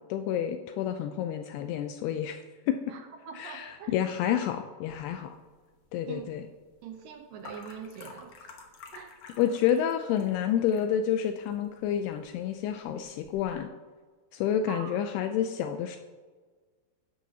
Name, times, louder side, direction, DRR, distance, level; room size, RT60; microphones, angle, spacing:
voice 1, 0.1-2.4 2.7-2.8 3.4-5.4 5.9-6.4 9.4-13.7 14.3-16.0, left 9 dB, 80° left, 7 dB, 2.5 m, -29 dB
voice 2, 2.9-4.0 6.1-6.3 6.8-8.5 8.9-9.1 14.7-15.0, right 7 dB, 75° right, 4 dB, 2.0 m, -43 dB
sound 1, 4.9-13.6, left 4 dB, 60° left, 1.9 m, -52 dB
14.5 x 10.5 x 2.8 m, 1.4 s
omnidirectional pair, 4.8 m